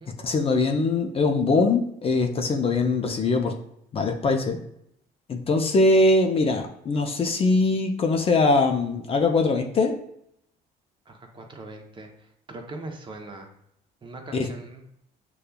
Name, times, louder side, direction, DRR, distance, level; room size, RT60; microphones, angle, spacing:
voice 1, 0.2-3.5 3.9-4.6 5.3-9.9 14.3-14.5, left 3 dB, 35° left, 3 dB, 0.5 m, -22 dB
voice 2, 11.1-13.5 14.0-14.8, right 2 dB, 30° right, 3 dB, 0.7 m, -41 dB
6.6 x 2.3 x 2.2 m, 0.73 s
cardioid pair, 110°, 17 cm